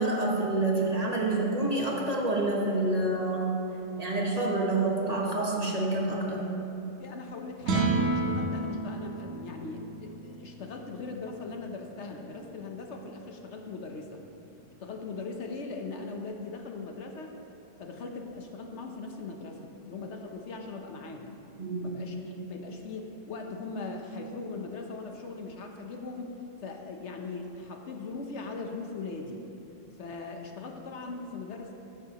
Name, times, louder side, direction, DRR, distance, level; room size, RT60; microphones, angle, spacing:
voice 1, 0.0-3.6 4.0-6.5 21.6-22.0, right 2 dB, 30° right, -3 dB, 1.2 m, -28 dB
voice 2, 7.0-14.2 14.8-17.3 17.8-21.4 21.8-29.5 30.0-31.7, left 3 dB, 65° left, 3 dB, 1.1 m, -40 dB
sound 1, 7.6-14.0, right 3 dB, 80° right, 1.5 m, -33 dB
14.0 x 9.7 x 2.9 m, 2.8 s
omnidirectional pair, 1.3 m